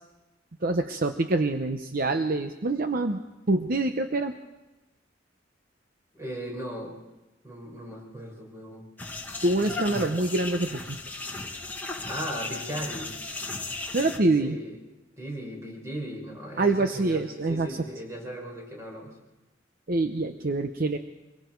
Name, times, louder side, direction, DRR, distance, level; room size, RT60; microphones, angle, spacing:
voice 1, 0.6-3.2 3.5-4.3 9.4-11.0 13.9-14.6 16.6-17.8 19.9-21.0, right 2 dB, 50° right, 7 dB, 0.8 m, -25 dB
voice 2, 6.1-6.9 7.4-8.8 12.1-13.1 14.4-14.8 15.2-19.1, equal, 15° right, -1 dB, 5.8 m, -37 dB
sound 1, 9.0-14.2, left 3 dB, 10° left, 1.7 m, -36 dB
24.5 x 23.0 x 4.6 m, 1.0 s
head